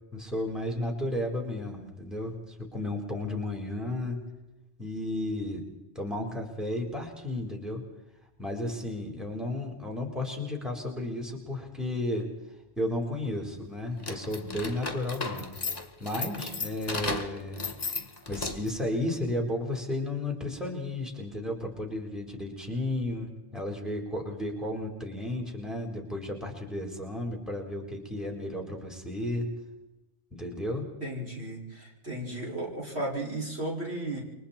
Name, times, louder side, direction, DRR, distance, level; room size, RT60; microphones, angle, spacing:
voice 1, 0.1-4.2 4.8-5.7 5.9-7.8 8.4-12.3 12.8-15.6 16.0-17.7 18.3-29.5 30.3-30.9, left 1 dB, ahead, 1 dB, 4.4 m, -33 dB
sound 1, 14.0-18.8, left 3 dB, 35° left, 2.1 m, -35 dB
voice 2, 31.0-34.2, right 1 dB, 65° right, -3 dB, 6.6 m, -34 dB
29.0 x 24.0 x 4.5 m, 0.97 s
omnidirectional pair, 1.1 m